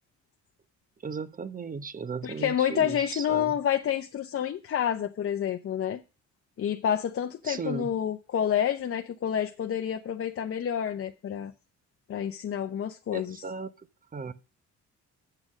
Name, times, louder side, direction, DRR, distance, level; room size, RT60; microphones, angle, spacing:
voice 1, 1.0-3.6 7.4-7.9 13.1-13.9 14.1-14.3, right 5 dB, 30° right, 0.9 m, -36 dB
voice 2, 2.2-6.0 6.6-11.5 12.1-13.4, left 9 dB, 45° left, 0.7 m, -29 dB
7.7 x 6.2 x 6.3 m
cardioid pair, 90°, 30 cm